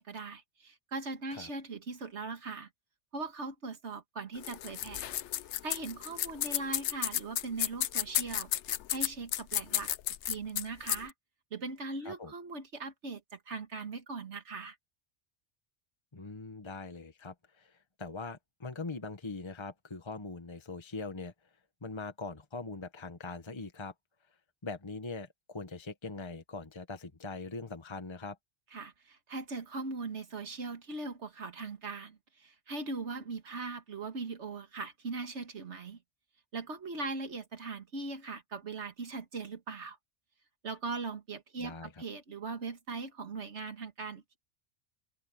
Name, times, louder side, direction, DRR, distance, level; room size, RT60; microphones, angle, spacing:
voice 1, 0.0-2.7 3.1-5.1 5.6-8.5 8.9-9.9 10.3-11.1 11.5-14.8 28.7-36.0 36.5-40.0 40.6-44.4, right 3 dB, 75° right, 2.0 m, -40 dB
sound 1, 4.4-11.1, left 12 dB, 75° left, 0.9 m, -32 dB
voice 2, 16.1-21.3 21.8-23.9 24.6-28.4 41.6-41.9, left 3 dB, 25° left, 1.2 m, -42 dB
omnidirectional pair, 1.2 m